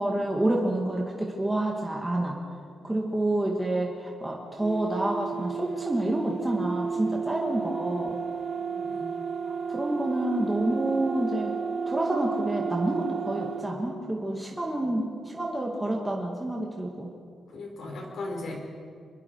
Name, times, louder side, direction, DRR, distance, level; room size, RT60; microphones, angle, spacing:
voice 1, 0.0-2.4 2.8-8.2 9.7-11.5 11.9-17.1, right 1 dB, 10° right, -2 dB, 2.0 m, -28 dB
sound 1, 4.6-13.7, right 5 dB, 50° right, 3.8 m, -32 dB
voice 2, 8.6-9.2 14.8-14.9 17.5-18.5, left 2 dB, 60° left, 1 dB, 4.7 m, -38 dB
26.0 x 21.0 x 4.7 m, 2.2 s
wide cardioid pair, 145°, 0 cm